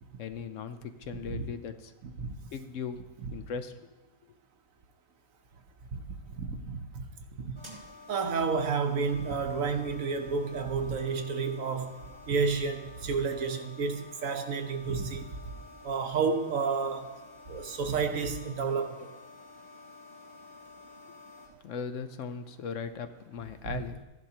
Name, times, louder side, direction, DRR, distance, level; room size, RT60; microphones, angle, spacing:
voice 1, 0.2-1.9 2.5-3.0 3.3-3.9 21.6-24.0, left 6 dB, 70° left, 9 dB, 1.0 m, -38 dB
voice 2, 6.4-7.0 7.4-7.5 8.1-12.0 12.3-15.2 15.8-17.1 17.5-19.1 23.7-24.0, right 5 dB, 80° right, 6 dB, 1.3 m, -30 dB
sound 1, 7.6-21.5, left 3 dB, 40° right, 3.9 m, -51 dB
14.5 x 10.5 x 2.9 m, 1.1 s
omnidirectional pair, 1.4 m